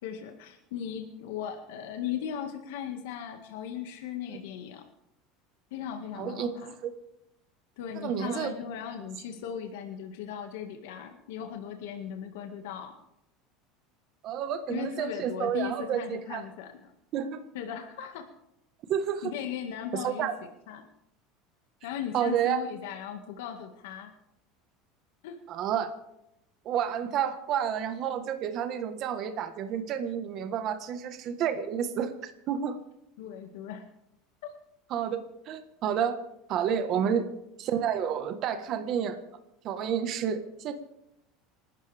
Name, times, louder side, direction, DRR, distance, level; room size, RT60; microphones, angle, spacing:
voice 1, 0.0-4.8 5.7-6.7 7.8-12.9 14.7-16.9 17.5-18.2 19.2-20.3 20.7-20.9 21.8-24.1 25.2-25.4 33.2-33.9 34.4-34.5 37.0-37.2, left 9 dB, 80° left, 4 dB, 1.9 m, -37 dB
voice 2, 6.2-6.9 7.9-8.5 14.2-16.4 17.1-17.4 18.9-19.3 19.9-20.3 22.1-22.6 25.5-25.9 26.6-32.1 32.5-32.8 34.9-36.2 36.5-37.3 37.6-39.2 39.6-40.7, right 8 dB, 35° right, 8 dB, 1.4 m, -30 dB
29.0 x 13.0 x 3.5 m, 0.83 s
cardioid pair, 170°, 0 cm